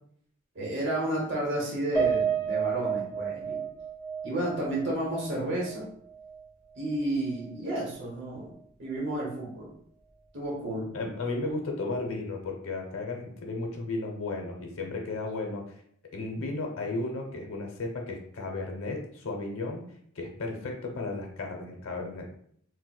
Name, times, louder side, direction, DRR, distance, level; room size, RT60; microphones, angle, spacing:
voice 1, 0.5-3.6 4.2-5.9 6.7-8.5 8.8-9.7 10.3-10.9, right 1 dB, 60° right, -3 dB, 1.0 m, -31 dB
Piano, 1.9-6.4 6.8-6.9 7.3-7.5, right 7 dB, 10° left, 0.7 m, -31 dB
voice 2, 10.9-15.6 16.1-19.8 20.2-22.3, left 2 dB, 85° left, 2 dB, 0.6 m, -34 dB
4.0 x 2.2 x 2.2 m, 0.64 s
head